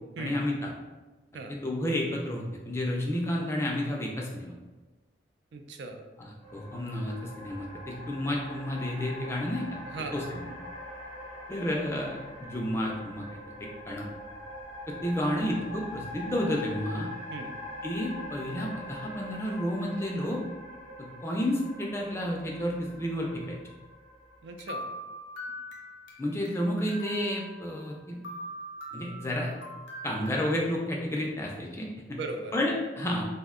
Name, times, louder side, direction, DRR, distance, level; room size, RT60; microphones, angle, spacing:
voice 1, 0.2-0.7 1.5-4.5 6.2-9.7 10.1-10.5 11.5-13.3 13.6-14.1 14.9-17.1 17.8-20.4 21.0-23.6 26.2-28.2 28.9-29.5 30.0-32.2 32.5-33.2, left 1 dB, 15° left, -1 dB, 0.3 m, -31 dB
voice 2, 5.5-6.0 9.9-10.3 17.3-17.6 24.4-24.9 32.1-32.5, right 3 dB, 80° right, 4 dB, 0.3 m, -38 dB
sound 1, 6.4-24.7, left 1 dB, 40° right, 0.9 m, -43 dB
sound 2, 24.6-26.6 26.9-27.9 28.2-30.5, equal, 90° left, 0.6 m, -42 dB
2.6 x 2.1 x 3.6 m, 1.2 s
head